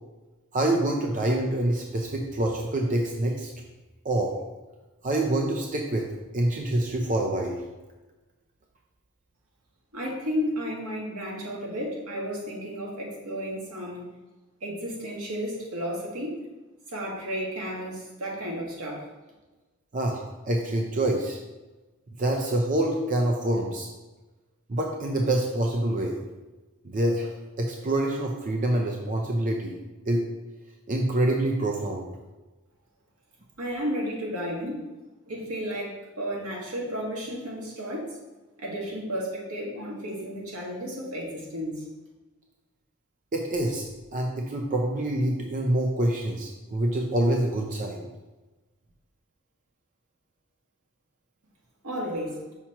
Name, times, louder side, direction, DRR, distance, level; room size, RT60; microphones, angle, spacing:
voice 1, 0.5-3.5 4.0-4.3 5.0-7.6 19.9-21.4 22.2-23.9 24.7-26.2 26.8-27.3 27.6-29.8 30.1-30.2 30.9-32.1 43.3-43.8 44.1-48.1, right 1 dB, 35° right, 1 dB, 0.5 m, -26 dB
voice 2, 9.9-14.1 14.6-16.4 16.9-19.1 33.6-34.9 35.3-38.2 38.6-41.9 51.8-52.4, equal, 85° right, -3 dB, 1.7 m, -33 dB
5.8 x 5.7 x 2.9 m, 1.1 s
head